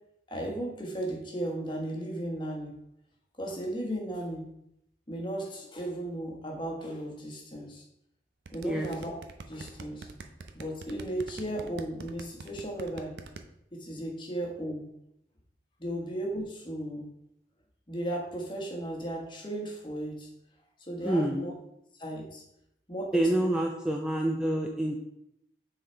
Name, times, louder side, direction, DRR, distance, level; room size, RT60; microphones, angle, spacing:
voice 1, 0.3-2.7 3.4-4.5 5.1-7.8 8.5-9.2 9.5-10.1 10.5-13.1 13.7-14.9 15.8-17.1 17.9-20.3 20.8-21.5 22.0-22.4 22.9-23.6, right 1 dB, 25° left, 0 dB, 1.3 m, -35 dB
sound 1, 8.5-13.4, right 4 dB, 75° right, 0.6 m, -43 dB
voice 2, 21.0-21.5 23.1-25.0, right 1 dB, 5° right, 0 dB, 0.4 m, -27 dB
6.5 x 4.0 x 4.4 m, 0.79 s
head